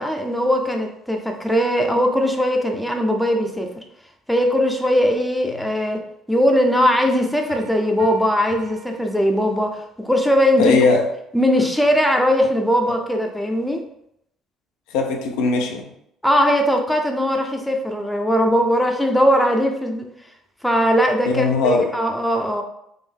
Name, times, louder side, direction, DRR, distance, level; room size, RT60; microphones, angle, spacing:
voice 1, 0.0-3.7 4.3-6.0 6.3-10.8 11.3-13.8 16.2-20.0 20.6-22.6, equal, 5° left, 0.6 m, -19 dB
Piano, 7.5-10.0, right 5 dB, 75° right, 0.5 m, -42 dB
voice 2, 10.6-11.1 14.9-15.9 21.3-22.0, left 4 dB, 80° left, 0.5 m, -19 dB
3.6 x 2.0 x 3.6 m
supercardioid pair, 70°, 0 cm